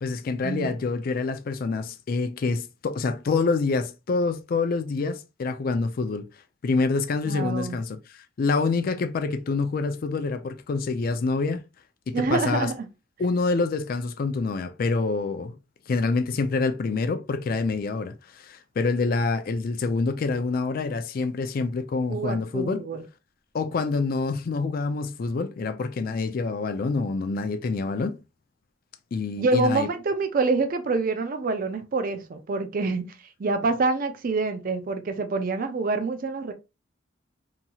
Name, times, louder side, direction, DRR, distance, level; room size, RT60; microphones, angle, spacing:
voice 1, 0.0-6.3 6.6-11.6 12.1-12.7 13.2-15.6 15.9-22.8 23.5-28.2 29.1-29.9, left 4 dB, 50° left, 0.4 m, -26 dB
voice 2, 7.3-7.8 12.1-12.9 22.1-23.0 29.4-33.1 33.4-36.5, right 3 dB, 45° right, 0.4 m, -26 dB
2.9 x 2.7 x 2.3 m
head